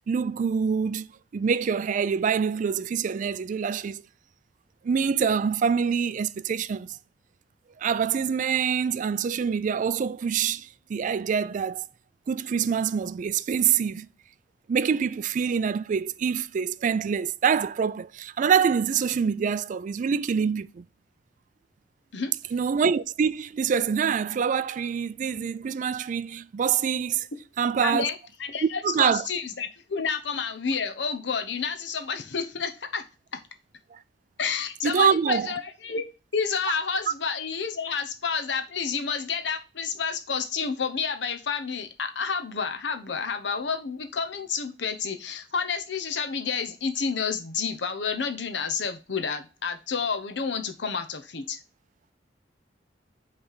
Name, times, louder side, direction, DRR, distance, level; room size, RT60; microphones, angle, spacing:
voice 1, 0.1-1.1 1.3-4.0 4.8-7.0 7.8-11.9 12.3-14.1 14.7-20.8 22.5-27.3 27.6-28.1 28.6-29.2 33.9-34.0 34.8-35.5, right 6 dB, 45° right, 0.3 m, -25 dB
voice 2, 27.8-28.1 28.4-33.0 34.4-36.0 36.3-51.6, left 5 dB, 75° left, 0.8 m, -30 dB
5.6 x 3.3 x 5.6 m
head